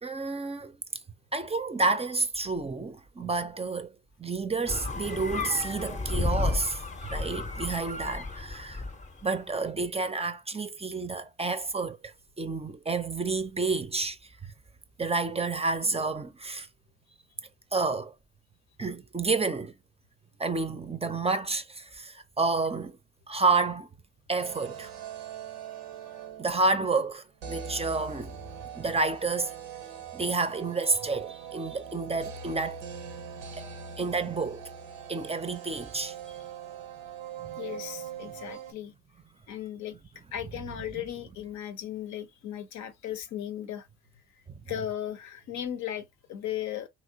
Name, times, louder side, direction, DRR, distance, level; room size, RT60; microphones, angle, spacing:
voice 1, 0.0-0.8 1.3-3.9 4.2-8.8 9.2-14.5 15.0-16.7 17.7-18.1 18.8-19.7 20.4-23.0 23.3-23.9 24.3-24.9 26.4-28.4 28.7-29.5 30.1-32.8 33.6-33.7 34.0-34.6 35.1-36.2 37.4-37.6 38.3-38.4 44.5-44.6, right 3 dB, 20° right, 0.5 m, -30 dB
sound 1, 4.7-9.2, left 3 dB, 25° left, 0.6 m, -32 dB
sound 2, 24.4-26.7 27.4-38.7, right 7 dB, 90° right, 0.6 m, -42 dB
voice 2, 37.6-38.9 39.5-40.0 40.3-43.9 44.6-46.9, left 11 dB, 70° left, 0.7 m, -36 dB
3.0 x 2.9 x 2.7 m
hypercardioid pair, 45°, 30 cm